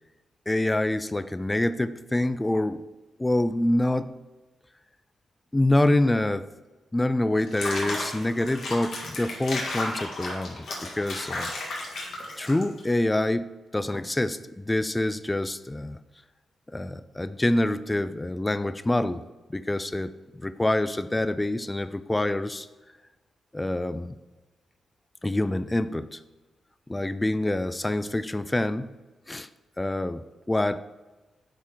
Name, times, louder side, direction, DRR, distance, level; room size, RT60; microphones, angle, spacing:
voice 1, 0.5-2.8 3.2-4.1 5.5-6.5 6.9-11.5 12.4-16.0 16.7-19.2 19.5-22.7 23.5-24.2 25.2-26.2 26.9-29.0 29.3-29.5 29.8-30.8, left 1 dB, 15° left, 13 dB, 0.3 m, -26 dB
Water / Bathtub (filling or washing), 7.4-12.9, left 2 dB, 75° left, 1.6 m, -33 dB
9.0 x 4.3 x 3.6 m, 1.2 s
cardioid pair, 80°, 0 cm